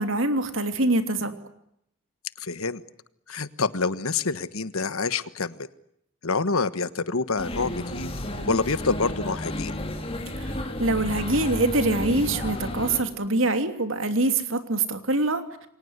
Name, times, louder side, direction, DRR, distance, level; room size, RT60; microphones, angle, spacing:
voice 1, 0.0-1.3 10.4-15.4, right 2 dB, 65° right, 8 dB, 3.0 m, -24 dB
voice 2, 2.4-2.8 3.3-5.5 6.2-8.1 8.5-9.7, left 4 dB, 80° left, 14 dB, 1.4 m, -27 dB
sound 1, 7.4-13.0, left 1 dB, 25° left, 3.8 m, -32 dB
29.0 x 24.0 x 8.1 m, 0.74 s
head